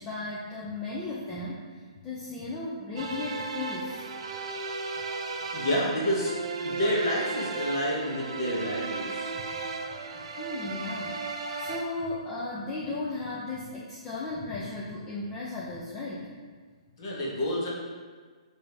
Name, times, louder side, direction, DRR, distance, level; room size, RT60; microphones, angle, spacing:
voice 1, 0.0-1.6 2.0-4.1 10.4-11.2 11.6-16.3, left 2 dB, 15° left, -5 dB, 0.4 m, -35 dB
sound 1, 3.0-11.8, right 4 dB, 60° right, 0.5 m, -35 dB
voice 2, 5.5-6.3 6.6-9.3 17.0-17.7, equal, 40° left, -5 dB, 1.0 m, -29 dB
4.9 x 2.7 x 3.4 m, 1.5 s
hypercardioid pair, 165°, 4 cm